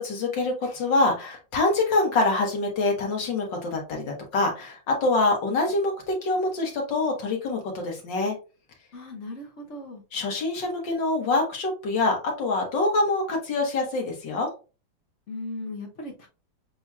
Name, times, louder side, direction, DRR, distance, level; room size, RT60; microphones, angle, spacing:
voice 1, 0.0-8.4 10.1-14.5, left 2 dB, 65° left, 1 dB, 1.9 m, -25 dB
voice 2, 8.9-10.0 15.3-16.3, left 2 dB, 50° left, 1 dB, 1.0 m, -37 dB
7.0 x 2.9 x 2.4 m, 0.32 s
omnidirectional pair, 2.2 m